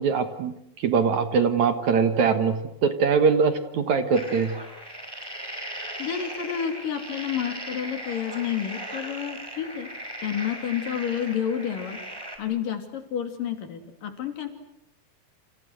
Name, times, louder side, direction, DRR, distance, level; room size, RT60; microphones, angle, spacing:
voice 1, 0.0-4.6, right 5 dB, 60° right, 8 dB, 2.5 m, -22 dB
sound 1, 4.1-12.4, equal, 5° right, 4.8 m, -38 dB
voice 2, 6.0-9.9 10.2-12.0 12.4-14.5, left 9 dB, 65° left, 6 dB, 4.4 m, -30 dB
29.5 x 29.0 x 6.5 m, 0.78 s
omnidirectional pair, 4.2 m